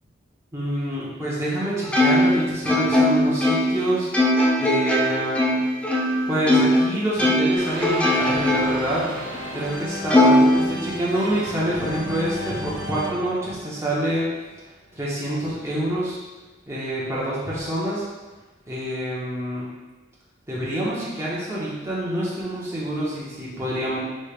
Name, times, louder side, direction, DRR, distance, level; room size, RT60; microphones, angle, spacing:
voice 1, 0.5-4.1 4.6-5.6 6.3-9.1 9.5-14.3 14.9-16.2 16.7-18.0 18.7-19.7 20.5-24.0, right 1 dB, 15° right, -8 dB, 0.7 m, -26 dB
Plucked string instrument, 1.9-6.9 7.2-8.9 9.3-9.4 10.1-11.3, left 1 dB, 5° left, 0.3 m, -20 dB
sound 1, 7.6-14.5, equal, 90° right, 0.6 m, -34 dB
3.3 x 3.0 x 2.4 m, 1.2 s
head